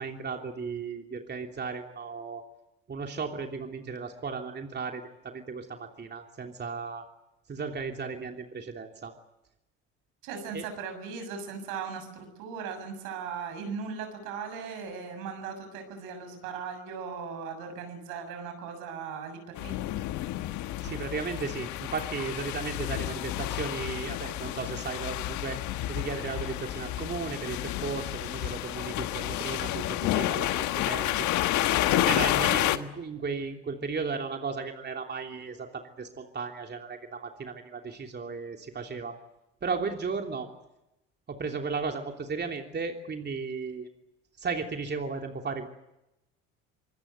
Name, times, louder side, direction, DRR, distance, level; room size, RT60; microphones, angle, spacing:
voice 1, 0.0-2.4 2.9-7.1 7.5-9.1 10.5-10.7 20.8-25.6 25.9-31.3 31.9-39.2 39.6-40.5 41.3-43.9 44.4-45.7, right 5 dB, 30° right, 4 dB, 3.1 m, -35 dB
voice 2, 10.2-19.7, right 6 dB, 75° right, 7 dB, 7.1 m, -38 dB
sound 1, 19.6-32.8, left 14 dB, 65° left, 1.7 m, -30 dB
26.0 x 22.0 x 8.2 m, 0.91 s
hypercardioid pair, 65°, 32 cm